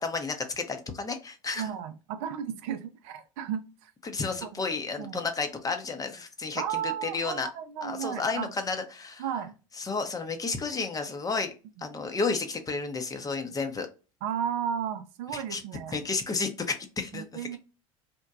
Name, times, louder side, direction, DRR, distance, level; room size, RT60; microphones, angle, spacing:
voice 1, 0.0-1.7 4.0-7.5 7.8-9.2 9.8-11.5 11.8-13.9 15.3-15.6 15.9-17.5, left 4 dB, 20° left, 6 dB, 0.6 m, -32 dB
voice 2, 1.6-3.9 4.4-4.6 5.0-5.2 6.6-8.5 9.2-9.5 14.2-16.0 17.1-17.6, right 9 dB, 65° right, 9 dB, 0.4 m, -34 dB
2.8 x 2.1 x 2.3 m, 0.32 s
hypercardioid pair, 75°, 17 cm